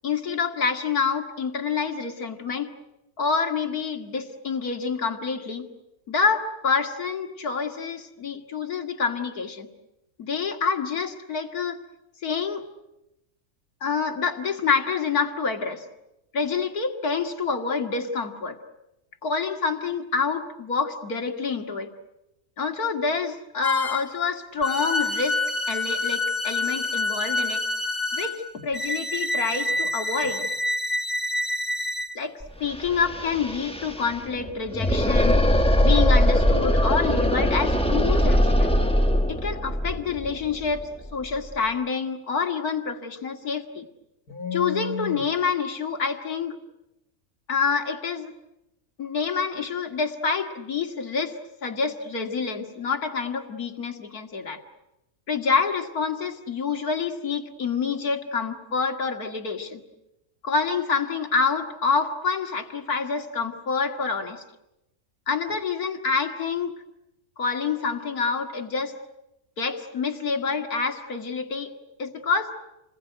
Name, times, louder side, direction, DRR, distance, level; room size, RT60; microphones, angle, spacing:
voice 1, 0.0-2.7 3.2-5.7 6.1-9.7 10.2-11.8 12.2-12.6 13.8-15.9 16.3-18.6 19.2-21.9 22.6-25.4 25.7-27.7 28.1-30.5 32.2-35.4 35.8-38.7 39.3-43.9 44.3-46.6 47.5-48.3 49.0-54.6 55.3-59.8 60.4-64.4 65.3-66.7 67.4-68.9 69.6-71.7 72.0-72.5, left 5 dB, 85° left, 5 dB, 2.6 m, -27 dB
sound 1, 23.6-24.1 24.6-32.1, left 2 dB, 30° left, 1.3 m, -27 dB
sound 2, 32.4-32.5 32.7-41.5, equal, 5° left, 1.3 m, -22 dB
28.5 x 21.0 x 9.1 m, 0.94 s
omnidirectional pair, 1.5 m